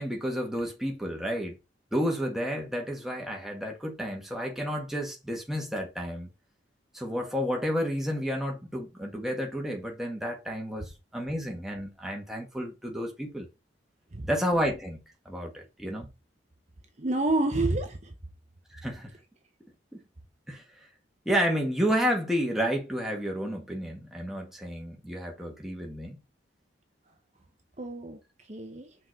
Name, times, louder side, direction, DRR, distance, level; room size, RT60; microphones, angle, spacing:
voice 1, 0.0-1.6 1.9-6.3 6.9-13.5 14.3-16.1 18.7-19.1 19.9-20.0 20.5-20.6 21.2-26.2, equal, ahead, 1.5 m, -31 dB
voice 2, 17.0-18.1 27.8-29.0, right 2 dB, 35° right, 0.8 m, -29 dB
5.8 x 4.2 x 4.5 m
head